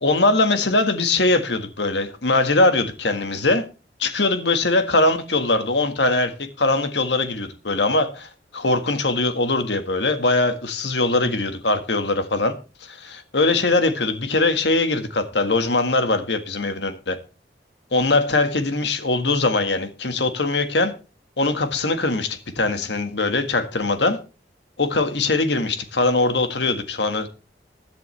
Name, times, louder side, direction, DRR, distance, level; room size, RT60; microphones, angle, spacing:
voice 1, 0.0-3.6 4.0-6.3 6.6-12.5 12.8-17.2 17.9-20.9 21.4-24.2 24.8-27.3, left 2 dB, 80° left, 1.6 m, -21 dB
16.0 x 10.5 x 3.3 m
head